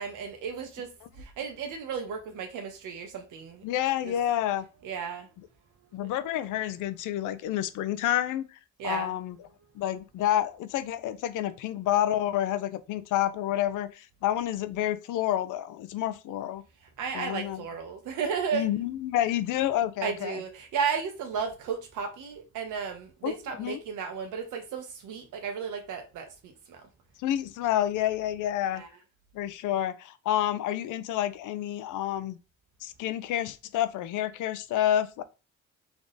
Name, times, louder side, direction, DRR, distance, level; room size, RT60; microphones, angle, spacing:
voice 1, 0.0-0.9 1.2-3.6 4.0-4.1 4.8-5.3 8.8-9.1 17.0-18.7 20.0-26.8 28.7-28.9, right 6 dB, 85° right, 1.3 m, -34 dB
voice 2, 3.6-4.6 5.9-9.4 9.7-16.6 17.1-17.6 18.5-20.4 23.2-23.8 27.2-28.8 29.3-32.4 32.8-35.2, left 12 dB, 85° left, 0.6 m, -29 dB
3.6 x 3.6 x 3.9 m
cardioid pair, 90°, 30 cm